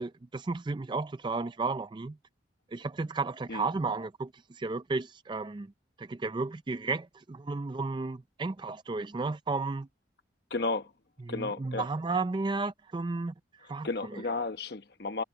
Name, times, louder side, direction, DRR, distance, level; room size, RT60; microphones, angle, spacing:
voice 1, 0.0-2.2 2.7-5.7 6.0-9.9 11.3-14.2, right 3 dB, 25° right, 0.4 m, -33 dB
voice 2, 10.5-10.9 11.3-11.9 13.6-15.2, left 3 dB, 60° left, 1.0 m, -33 dB
head